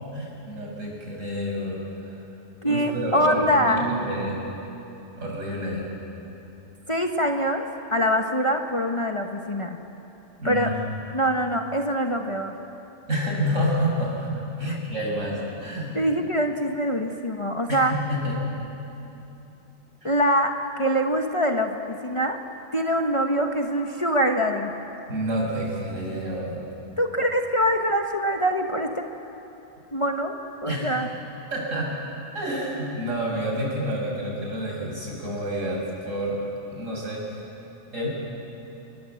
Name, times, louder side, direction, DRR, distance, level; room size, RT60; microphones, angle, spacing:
voice 1, 0.1-2.2 2.6-4.3 5.2-5.8 10.4-10.7 13.1-14.3 14.6-16.0 17.7-18.3 20.0-20.1 25.1-26.7 30.7-30.9 31.5-32.0 32.3-36.4 36.7-37.2 37.9-38.1, equal, 75° right, -1 dB, 6.2 m, -28 dB
voice 2, 2.6-3.9 6.9-9.8 10.4-10.8 11.1-12.6 14.7-14.8 15.9-18.0 20.0-22.4 22.7-24.7 27.0-29.1 29.9-31.1, equal, 25° left, 3 dB, 1.2 m, -24 dB
28.0 x 21.5 x 7.8 m, 2.9 s
omnidirectional pair, 1.3 m